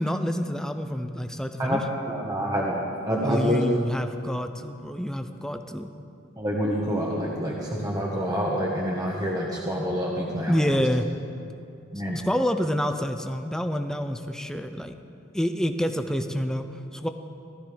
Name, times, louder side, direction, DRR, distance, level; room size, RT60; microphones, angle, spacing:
voice 1, 0.0-1.9 3.2-5.9 10.5-11.1 12.2-14.9 15.3-16.7 16.9-17.1, equal, 5° left, 7 dB, 0.5 m, -27 dB
voice 2, 2.1-2.8 3.1-3.6 6.4-10.5 11.9-12.2, equal, 20° right, -3 dB, 1.3 m, -27 dB
15.5 x 13.0 x 5.1 m, 2.5 s
head